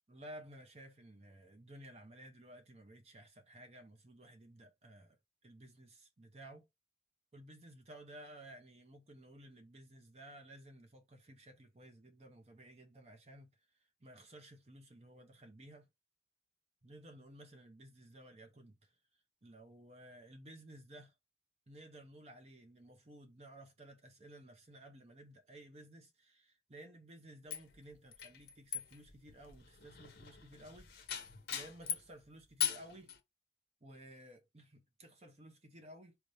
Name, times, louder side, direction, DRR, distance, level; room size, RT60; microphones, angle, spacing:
voice 1, 0.1-5.2 5.4-6.7 7.3-13.5 14.0-15.9 16.8-18.9 19.4-21.1 21.7-30.9 31.5-33.1 33.8-36.2, right 1 dB, 35° right, 0.8 m, -55 dB
sound 1, 27.5-32.1 32.6-33.2, left 9 dB, 55° left, 0.8 m, -40 dB
4.3 x 2.7 x 3.2 m
head